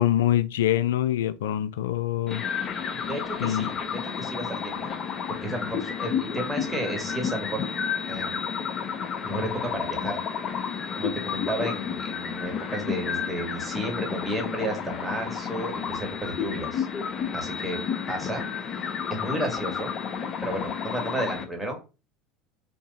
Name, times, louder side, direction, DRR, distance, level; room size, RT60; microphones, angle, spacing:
voice 1, 0.0-2.4 3.4-3.7, left 12 dB, 80° left, 0.4 m, -24 dB
sound 1, 2.3-21.4, left 7 dB, 45° left, 0.8 m, -31 dB
voice 2, 2.9-4.9 5.3-7.6 8.1-8.4 9.2-10.2 11.0-16.9 17.3-17.8 18.1-18.4 18.8-19.9 20.4-21.8, right 1 dB, 10° right, 1.9 m, -32 dB
3.6 x 2.8 x 4.1 m
hypercardioid pair, 85°, 0 cm